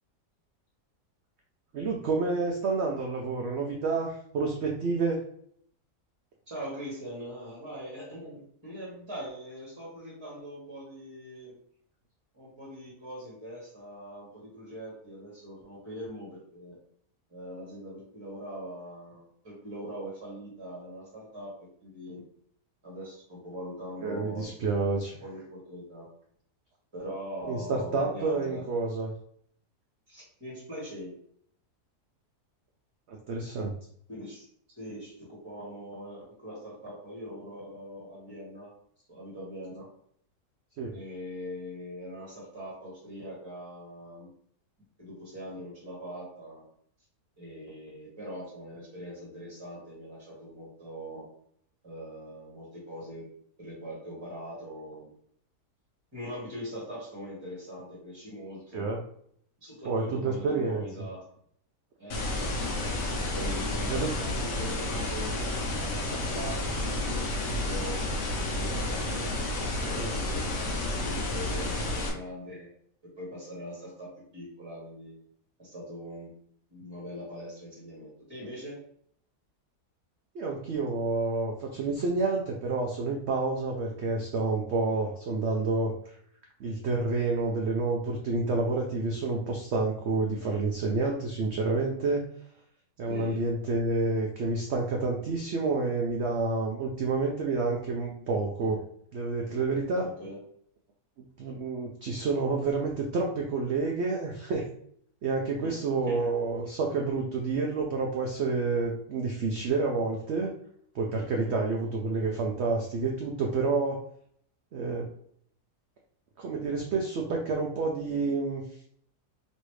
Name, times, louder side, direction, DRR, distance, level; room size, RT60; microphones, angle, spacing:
voice 1, 1.7-5.2 24.0-25.2 27.5-29.1 33.1-33.7 40.8-41.0 58.7-59.0 59.8-60.8 63.9-64.1 70.0-70.1 80.3-86.1 86.6-92.2 93.0-98.8 99.1-100.1 101.2-104.6 105.2-110.5 110.9-114.0 114.7-115.1 116.4-118.6, right 3 dB, 85° right, 0 dB, 0.6 m, -29 dB
voice 2, 6.5-11.5 12.3-16.8 17.3-22.2 22.8-24.8 25.2-26.1 26.9-28.7 30.1-31.1 34.1-34.5 34.7-38.7 39.1-39.9 40.9-44.3 45.0-46.6 47.4-51.2 51.8-53.2 53.6-55.1 56.1-58.9 59.6-61.2 62.0-65.3 65.8-68.0 68.4-72.7 73.2-74.1 74.3-75.1 75.6-76.3 76.7-78.8 84.9-85.0 93.1-93.4 100.2-100.4 105.6-105.7 106.1-106.3 111.3-111.6, equal, 20° right, -6 dB, 1.1 m, -42 dB
sound 1, 62.1-72.1, left 2 dB, 60° left, 1.0 m, -31 dB
3.1 x 2.7 x 3.1 m, 0.64 s
omnidirectional pair, 1.7 m